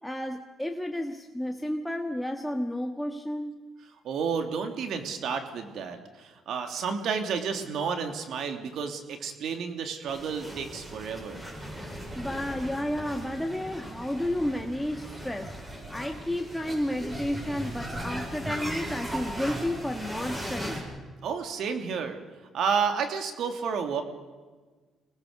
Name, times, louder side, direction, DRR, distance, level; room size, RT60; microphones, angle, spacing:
voice 1, 0.0-3.6 12.1-15.5 15.9-20.8, left 1 dB, 5° left, 3 dB, 1.6 m, -31 dB
voice 2, 4.0-11.5 21.2-22.2 22.5-24.0, right 6 dB, 75° right, 6 dB, 2.8 m, -31 dB
sound 1, 10.1-20.8, equal, 15° right, 7.5 m, -38 dB
25.5 x 19.5 x 6.7 m, 1.4 s
cardioid pair, 90°, 0 cm